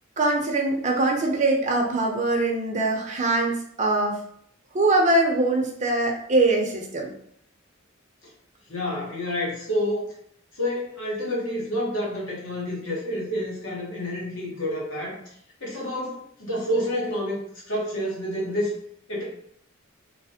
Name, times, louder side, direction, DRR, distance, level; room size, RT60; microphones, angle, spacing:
voice 1, 0.2-4.2 4.7-7.1, right 2 dB, 35° right, 1 dB, 0.6 m, -22 dB
voice 2, 8.7-10.1 10.5-15.2 15.6-18.7 19.1-19.2, left 1 dB, 70° left, -4 dB, 1.1 m, -28 dB
3.2 x 2.1 x 2.7 m, 0.69 s
head